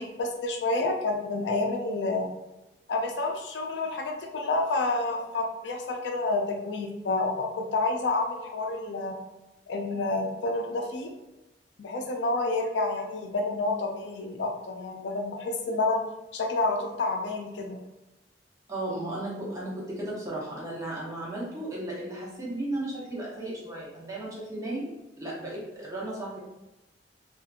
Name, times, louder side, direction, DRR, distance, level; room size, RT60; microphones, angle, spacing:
voice 1, 0.0-2.3 2.9-9.2 9.7-11.1 11.8-16.0 16.3-17.8, left 2 dB, 85° left, 2 dB, 0.4 m, -29 dB
voice 2, 18.7-24.9 25.2-26.4, right 1 dB, 20° right, -6 dB, 0.8 m, -35 dB
2.8 x 2.4 x 2.4 m, 1.0 s
head